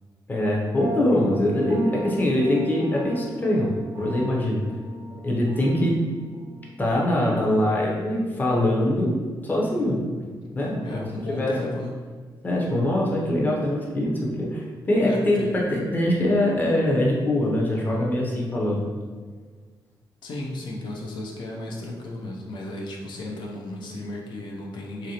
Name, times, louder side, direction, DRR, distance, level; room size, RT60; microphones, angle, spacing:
voice 1, 0.3-4.7 5.2-6.0 6.8-9.2 9.4-10.1 10.5-11.7 12.4-18.8, left 1 dB, 25° left, -3 dB, 0.6 m, -23 dB
sound 1, 0.7-8.4, equal, 45° right, 0.5 m, -38 dB
voice 2, 10.8-11.9 15.0-15.6 20.2-25.1, left 2 dB, 75° left, -2 dB, 0.5 m, -34 dB
3.0 x 2.6 x 2.8 m, 1.5 s
wide cardioid pair, 125°, 8 cm